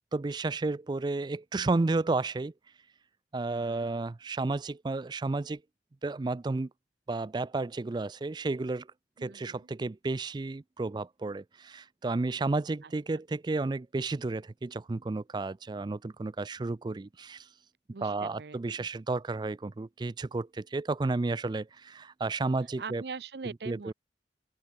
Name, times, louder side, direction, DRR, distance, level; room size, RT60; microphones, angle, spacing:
voice 1, 0.1-2.5 3.3-5.6 6.0-6.7 7.1-8.9 9.2-17.5 18.0-23.0 23.7-23.9, right 3 dB, 25° right, 0.3 m, -32 dB
voice 2, 3.5-3.9 9.2-9.7 12.8-12.9 17.9-18.9 22.8-23.9, right 4 dB, 65° right, 0.6 m, -43 dB
open air
head